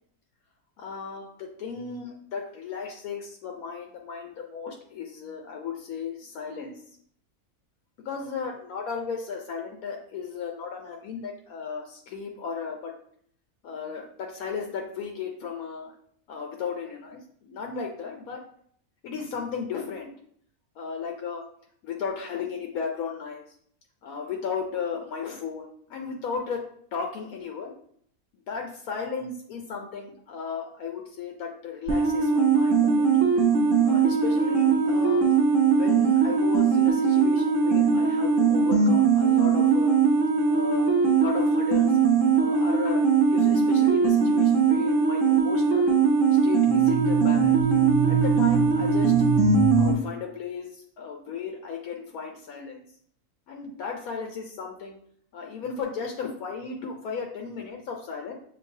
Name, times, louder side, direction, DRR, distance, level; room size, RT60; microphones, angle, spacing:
voice 1, 0.8-6.7 8.0-12.9 13.6-15.9 16.3-18.4 19.0-20.1 20.8-21.4 21.8-23.4 24.0-25.6 25.9-26.6 26.9-27.8 28.5-33.1 33.8-35.2 35.7-40.0 40.5-42.0 42.3-45.9 46.4-47.7 48.1-49.1 49.7-52.8 53.5-55.0 55.3-58.3, left 6 dB, 75° left, 2 dB, 1.1 m, -35 dB
sound 1, 31.9-49.9, right 5 dB, 65° right, 1.0 m, -21 dB
6.5 x 2.7 x 2.7 m, 0.62 s
omnidirectional pair, 1.6 m